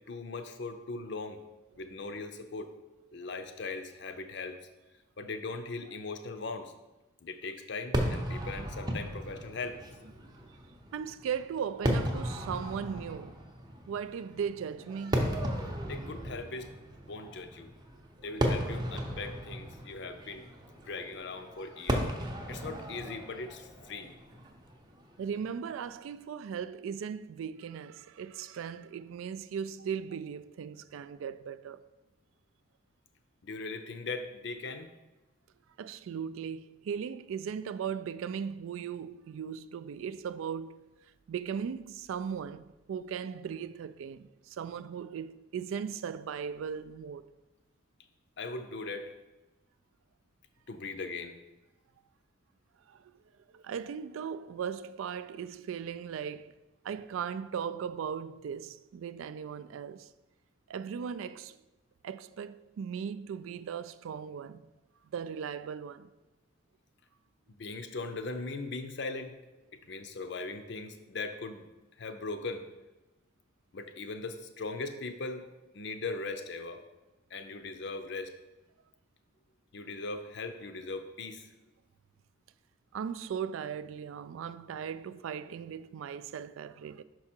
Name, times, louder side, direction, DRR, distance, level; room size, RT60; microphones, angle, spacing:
voice 1, 0.1-1.4 1.8-2.7 3.1-4.6 5.2-6.7 7.2-9.8 15.9-16.7 17.1-17.7 18.2-20.5 20.8-22.1 22.5-24.1 33.4-34.9 48.4-49.1 50.7-51.4 67.5-69.4 69.9-71.7 72.0-72.6 73.7-75.4 75.7-76.8 77.3-78.3 79.7-81.5, left 3 dB, 55° left, 0.5 m, -39 dB
Fireworks, 7.9-25.3, equal, 20° right, 0.6 m, -35 dB
voice 2, 10.9-13.4 13.9-15.4 25.2-31.9 35.8-40.8 41.3-47.3 52.9-53.1 53.5-60.1 60.7-61.6 62.0-64.7 65.1-66.1 82.9-87.0, right 7 dB, 80° right, 0.3 m, -38 dB
5.8 x 4.8 x 4.3 m
head